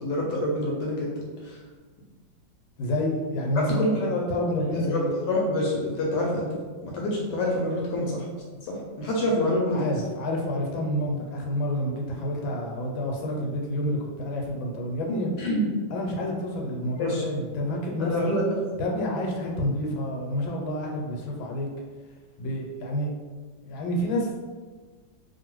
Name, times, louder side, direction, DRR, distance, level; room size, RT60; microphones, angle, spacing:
voice 1, 0.0-1.1 1.4-1.6 3.8-4.1 4.6-5.0 5.3-8.3 8.6-9.8 15.4-15.7 17.0-17.2 18.0-18.4, left 1 dB, 75° left, -2 dB, 1.1 m, -27 dB
voice 2, 2.8-5.2 9.3-9.4 9.6-15.3 15.9-18.3 18.8-21.7 22.4-23.1 23.7-24.4, left 1 dB, 90° left, 0 dB, 1.4 m, -29 dB
2.8 x 2.6 x 3.0 m, 1.5 s
omnidirectional pair, 2.1 m